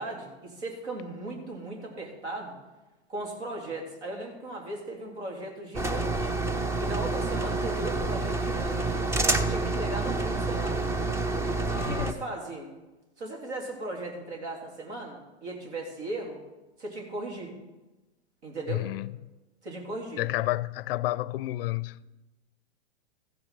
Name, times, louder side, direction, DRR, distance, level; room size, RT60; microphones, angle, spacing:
voice 1, 0.0-2.6 3.1-6.3 6.8-8.9 9.4-10.9 11.8-12.7 13.2-16.4 16.8-17.5 18.4-18.9 19.6-20.2, right 2 dB, 80° right, 3.3 m, -37 dB
sound 1, 5.7-12.1, right 2 dB, 10° right, 0.4 m, -28 dB
voice 2, 11.7-12.1 18.7-19.1 20.2-22.0, left 17 dB, 60° left, 0.4 m, -30 dB
14.5 x 5.8 x 5.7 m
hypercardioid pair, 115°, 33 cm